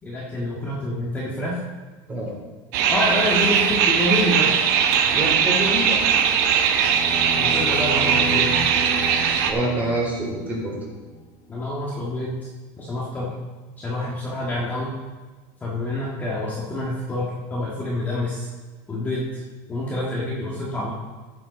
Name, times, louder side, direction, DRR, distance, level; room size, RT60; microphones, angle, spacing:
voice 1, 0.0-1.6 2.9-4.6 6.8-6.9 7.4-8.6 11.5-12.4 12.8-13.3 13.8-14.9 15.6-18.5 18.9-19.4 19.7-20.9, left 1 dB, 15° left, -6 dB, 1.7 m, -27 dB
sound 1, 2.7-9.5, right 7 dB, 75° right, 1.2 m, -20 dB
voice 2, 5.1-6.0 9.5-10.7, right 1 dB, 15° right, -4 dB, 3.8 m, -26 dB
sound 2, 6.8-11.1, left 1 dB, 65° left, 1.8 m, -32 dB
15.0 x 7.5 x 4.1 m, 1.3 s
cardioid pair, 160°, 10 cm